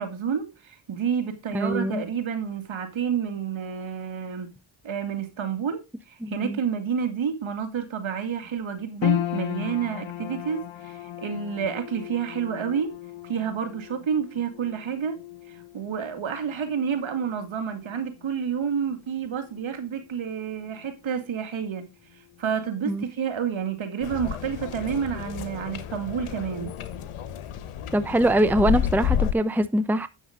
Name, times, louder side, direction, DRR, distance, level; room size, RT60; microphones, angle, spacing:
voice 1, 0.0-4.5 4.8-5.8 6.1-12.9 13.2-15.2 15.5-21.9 22.4-26.7, right 7 dB, 65° right, 2.3 m, -29 dB
voice 2, 1.5-2.0 6.2-6.6 22.9-23.0 27.9-30.1, right 1 dB, 5° right, 0.7 m, -23 dB
sound 1, 9.0-21.4 21.7-22.6 23.1-23.2, left 11 dB, 65° left, 1.2 m, -36 dB
sound 2, 24.0-29.3, left 9 dB, 90° left, 1.2 m, -30 dB
9.4 x 6.3 x 5.0 m
cardioid pair, 65°, 49 cm